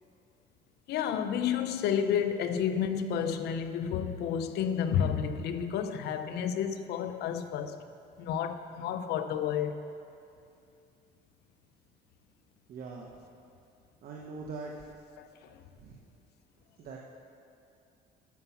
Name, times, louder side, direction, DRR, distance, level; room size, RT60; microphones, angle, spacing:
voice 1, 0.9-7.8 8.2-9.9 15.2-15.3, left 8 dB, 75° left, 0.7 m, -31 dB
voice 2, 12.7-13.1 14.0-14.7 15.8-16.0 16.8-17.0, right 4 dB, 60° right, 1.1 m, -41 dB
9.5 x 6.9 x 7.0 m
cardioid pair, 110°, 17 cm